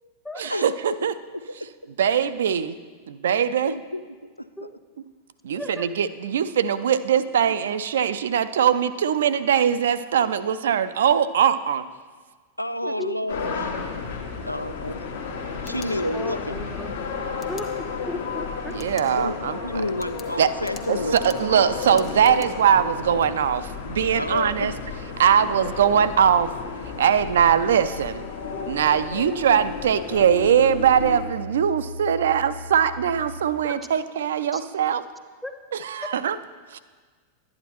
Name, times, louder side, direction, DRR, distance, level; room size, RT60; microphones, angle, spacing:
voice 1, 0.4-1.1 2.0-2.8 3.2-3.7 5.4-11.9 18.7-19.6 20.4-20.5 20.9-24.7 25.2-26.5 27.0-28.2 28.6-35.0 35.8-36.4 36.7-36.8, right 8 dB, 60° right, 14 dB, 0.4 m, -21 dB
voice 2, 3.6-4.0 7.4-7.6 12.6-14.0 14.5-14.9 15.6-16.7 19.2-19.4 19.6-21.7 24.2-24.7, left 1 dB, 90° left, 12 dB, 0.3 m, -30 dB
voice 3, 5.6-5.9 12.8-13.2 16.1-16.9 17.5-18.8 33.6-33.7 35.4-35.5, left 1 dB, 5° left, 7 dB, 0.6 m, -35 dB
sound 1, 13.3-31.2, left 5 dB, 60° left, 1.2 m, -33 dB
sound 2, 15.5-16.5 17.4-17.7 18.7-19.1 19.5-19.6 20.0-22.5, left 7 dB, 25° left, 1.0 m, -46 dB
Musical instrument, 30.1-33.6, left 1 dB, 80° right, 0.7 m, -38 dB
11.5 x 9.5 x 3.0 m, 1.5 s
figure-of-eight pair, 90°, 0 cm